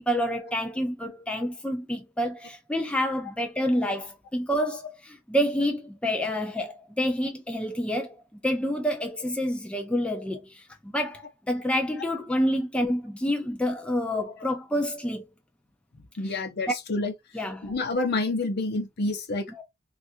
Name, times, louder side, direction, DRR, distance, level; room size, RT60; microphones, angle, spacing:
voice 1, 0.0-8.1 8.4-15.3 16.3-16.4 17.3-17.7 19.5-19.6, equal, 5° left, 0.4 m, -28 dB
voice 2, 15.9-17.1 17.6-19.5, left 2 dB, 50° left, 0.8 m, -28 dB
3.2 x 2.4 x 2.6 m
head